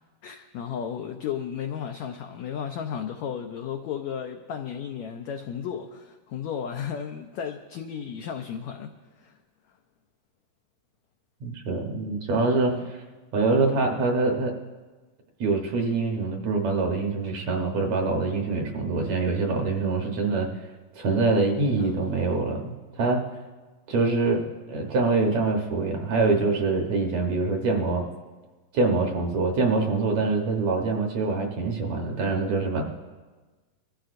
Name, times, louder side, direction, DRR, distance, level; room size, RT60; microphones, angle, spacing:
voice 1, 0.2-9.4 12.4-12.9 21.8-22.3 28.9-29.1, left 8 dB, 90° left, 4 dB, 1.6 m, -34 dB
voice 2, 11.4-12.7 13.3-14.5 15.4-20.7 21.0-23.2 23.9-24.4 24.7-28.0 28.7-32.8, right 3 dB, 65° right, 1 dB, 2.0 m, -24 dB
23.5 x 14.0 x 2.6 m, 1.3 s
omnidirectional pair, 4.0 m